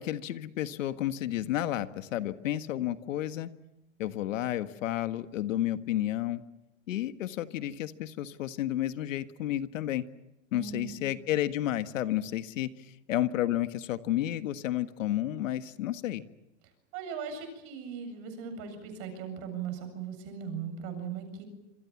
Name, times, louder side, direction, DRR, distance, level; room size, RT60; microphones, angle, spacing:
voice 1, 0.0-3.5 4.0-6.4 6.9-10.0 10.5-12.7 13.1-16.2, left 13 dB, 80° left, 10 dB, 1.7 m, -31 dB
voice 2, 10.5-11.0 16.9-21.4, right 7 dB, 40° right, 8 dB, 7.6 m, -38 dB
27.0 x 26.0 x 7.3 m, 0.90 s
supercardioid pair, 165°, 38 cm